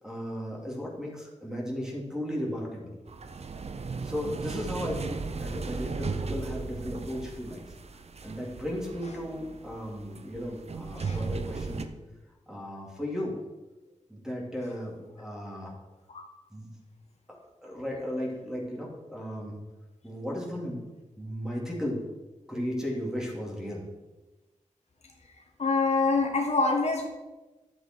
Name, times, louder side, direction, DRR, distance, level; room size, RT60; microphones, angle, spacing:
voice 1, 0.0-3.0 4.0-7.7 8.2-11.8 12.5-13.3 14.1-15.7 16.5-16.7 17.3-19.5 20.0-20.8 21.2-22.0 22.5-23.8, equal, 5° right, -3 dB, 3.0 m, -35 dB
sound 1, 3.1-11.8, right 4 dB, 55° right, 0.8 m, -36 dB
voice 2, 25.6-27.0, left 3 dB, 60° left, 1 dB, 1.7 m, -25 dB
11.5 x 7.9 x 4.6 m, 1.1 s
wide cardioid pair, 105°, 13 cm